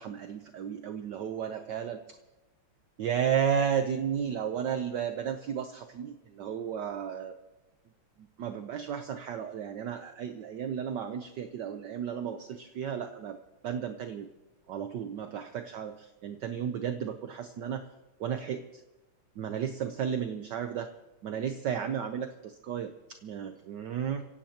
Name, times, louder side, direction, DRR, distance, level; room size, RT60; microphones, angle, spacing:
voice 1, 0.0-2.2 3.0-7.3 8.2-13.4 13.6-14.3 14.7-17.9 18.2-18.8 19.4-20.9 21.2-24.2, right 8 dB, 65° right, 7 dB, 1.2 m, -33 dB
27.5 x 16.5 x 2.9 m, 1.1 s
omnidirectional pair, 2.3 m